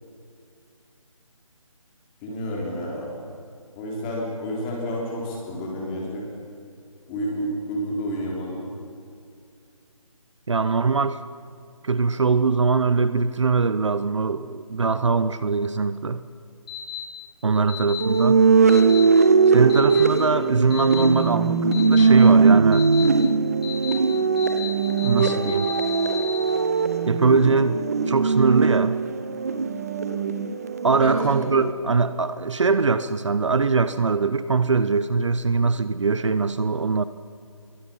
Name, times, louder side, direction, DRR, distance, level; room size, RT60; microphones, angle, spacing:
voice 1, 2.2-3.1 3.7-6.3 7.1-8.7 31.0-31.3, equal, 10° left, -2 dB, 3.5 m, -30 dB
voice 2, 10.5-11.2 11.8-16.2 17.4-18.4 19.5-21.6 21.9-22.9 25.0-25.7 27.1-27.8 28.1-29.0 30.8-37.0, right 4 dB, 55° right, 13 dB, 0.9 m, -22 dB
sound 1, 16.7-17.0 17.7-18.0 18.7-19.0 19.7-20.0 20.7-21.0 21.7-22.0 22.7-23.0 23.6-23.9 24.4-24.7 25.0-26.4, left 10 dB, 45° left, 6.6 m, -34 dB
sound 2, 18.0-31.7, right 4 dB, 25° right, 0.8 m, -20 dB
27.5 x 23.0 x 5.5 m, 2.4 s
figure-of-eight pair, 170°, 18 cm